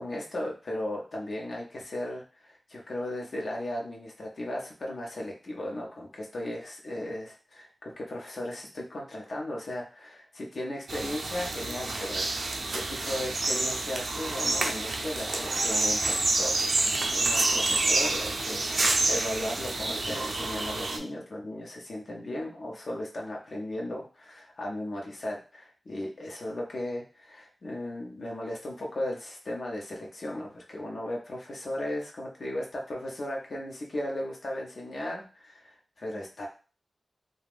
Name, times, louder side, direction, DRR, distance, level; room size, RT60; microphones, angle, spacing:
voice 1, 0.0-36.5, left 1 dB, 65° left, -1 dB, 0.7 m, -36 dB
sound 1, 10.9-21.0, right 2 dB, 70° right, 0.4 m, -28 dB
2.5 x 2.3 x 3.4 m, 0.36 s
cardioid pair, 60°, 0 cm